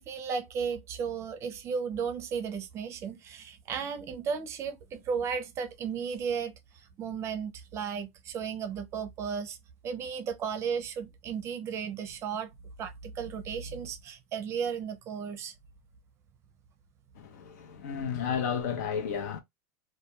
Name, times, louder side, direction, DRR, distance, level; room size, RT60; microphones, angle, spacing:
voice 1, 0.0-9.6 9.8-12.5 12.8-15.5, right 6 dB, 30° right, 0.5 m, -34 dB
voice 2, 17.1-19.4, left 7 dB, 80° left, 0.7 m, -32 dB
2.2 x 2.2 x 2.8 m
supercardioid pair, 140°, 9 cm